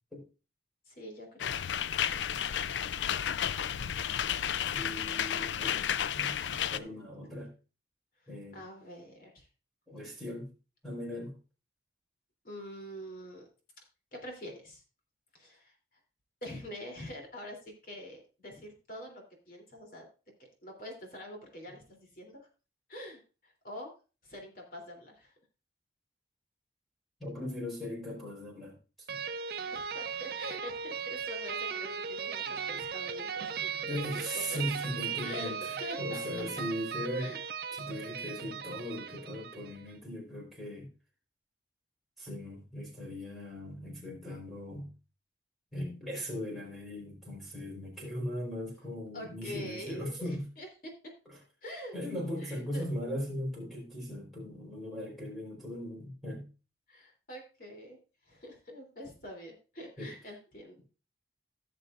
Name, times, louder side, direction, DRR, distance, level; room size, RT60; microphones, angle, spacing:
voice 1, 0.9-1.8 6.7-6.9 8.5-9.5 12.4-13.5 14.1-14.8 15.3-15.7 16.4-20.1 20.6-22.5 22.9-23.9 24.2-25.3 29.7-34.0 34.5-34.6 35.2-35.5 35.8-36.2 37.1-37.4 49.1-50.9 51.6-51.9 52.4-52.9 56.9-58.0 58.2-60.8, equal, 50° left, 1 dB, 3.2 m, -45 dB
sound 1, 1.4-6.8, left 9 dB, 85° left, 0.4 m, -32 dB
voice 2, 4.7-7.5 8.3-8.6 9.9-10.5 10.8-11.4 27.2-29.2 33.8-37.3 37.7-40.9 42.2-44.9 45.7-50.5 51.3-51.4 51.9-56.5 60.0-60.1, equal, ahead, -2 dB, 4.2 m, -39 dB
sound 2, 29.1-39.8, right 6 dB, 55° right, 0.7 m, -37 dB
16.0 x 6.8 x 2.5 m, 0.32 s
head